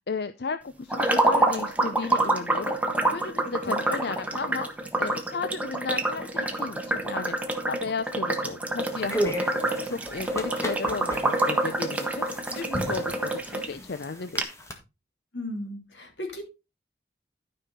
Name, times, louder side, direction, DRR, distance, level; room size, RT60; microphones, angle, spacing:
voice 1, 0.1-2.8 3.0-4.7 5.0-7.4 7.7-14.4, left 4 dB, 65° left, 11 dB, 0.6 m, -34 dB
sound 1, 0.9-13.7 14.0-14.1 14.4-14.5, right 2 dB, 10° right, 1.4 m, -27 dB
sound 2, 8.8-14.7, equal, 15° left, 1.8 m, -35 dB
voice 2, 15.3-16.4, left 1 dB, 90° left, 3 dB, 3.2 m, -35 dB
12.5 x 5.6 x 4.2 m, 0.27 s
head